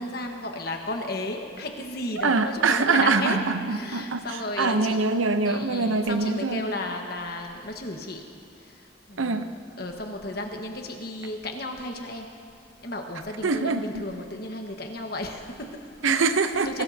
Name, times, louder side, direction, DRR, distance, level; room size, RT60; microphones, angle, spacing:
voice 1, 0.0-3.4 3.7-5.0 5.4-8.2 8.6-12.3 12.8-16.0 16.6-16.8, left 2 dB, 50° left, 2 dB, 1.4 m, -34 dB
voice 2, 2.2-6.6 9.2-9.5 13.4-14.1 16.0-16.8, right 4 dB, 85° right, 9 dB, 0.8 m, -24 dB
22.5 x 19.0 x 2.8 m, 2.6 s
head